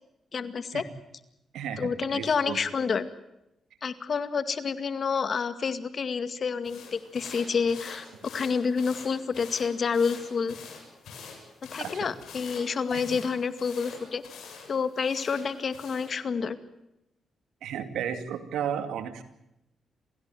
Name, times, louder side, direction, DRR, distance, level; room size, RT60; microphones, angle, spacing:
voice 1, 0.3-0.8 1.8-3.0 3.8-10.6 11.7-14.2 14.7-16.6, left 5 dB, 55° left, 12 dB, 2.1 m, -29 dB
voice 2, 1.5-2.6 11.8-12.0 12.9-13.0 17.6-19.2, right 8 dB, 85° right, 10 dB, 2.5 m, -33 dB
sound 1, 6.6-16.1, left 5 dB, 75° left, 7.8 m, -46 dB
27.5 x 16.5 x 9.2 m, 0.86 s
cardioid pair, 65°, 0 cm